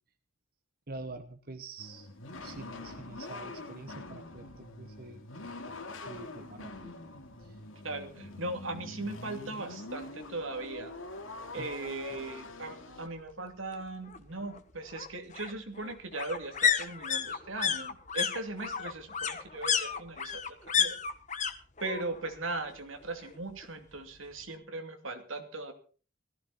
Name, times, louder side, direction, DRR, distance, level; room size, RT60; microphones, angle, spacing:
voice 1, 0.9-2.1 2.4-5.2 6.1-6.9 7.5-7.6 11.6-11.7, right 2 dB, 45° right, 7 dB, 1.2 m, -46 dB
sound 1, 1.8-13.1, left 2 dB, 85° left, 2.5 m, -44 dB
voice 2, 7.8-10.9 11.5-21.0 21.8-25.7, right 2 dB, 85° right, 6 dB, 2.7 m, -39 dB
sound 2, 10.6-10.7 11.1-11.2 11.4-12.4 13.7-21.5 21.8-22.4 22.6-23.7 24.0-24.1, left 7 dB, 35° left, 1.3 m, -32 dB
17.5 x 15.0 x 4.2 m, 0.39 s
head